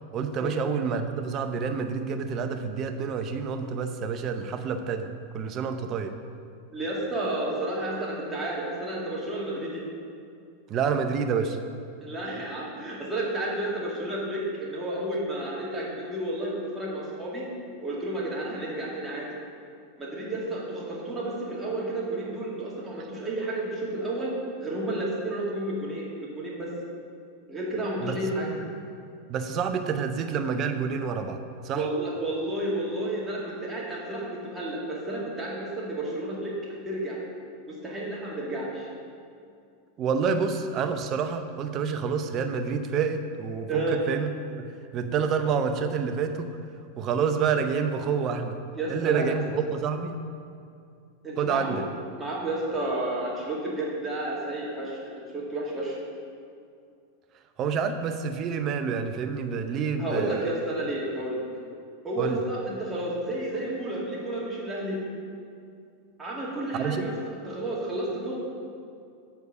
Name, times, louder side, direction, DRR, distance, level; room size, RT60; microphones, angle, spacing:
voice 1, 0.1-6.1 10.7-11.6 28.0-28.2 29.3-31.4 31.6-31.9 40.0-46.6 47.0-48.6 48.9-50.2 51.4-51.8 57.6-60.5 62.2-62.4 66.7-67.0, right 6 dB, 40° right, 8 dB, 0.7 m, -28 dB
voice 2, 6.7-9.8 12.0-17.4 17.8-19.3 20.0-24.3 24.6-26.7 27.5-28.5 31.7-37.2 37.7-38.9 43.7-44.0 48.7-49.4 51.2-51.8 52.2-56.0 60.0-61.4 62.0-65.0 66.2-68.3, right 1 dB, 15° right, -5 dB, 2.3 m, -31 dB
8.3 x 4.6 x 6.7 m, 2.4 s
hypercardioid pair, 110°, 0 cm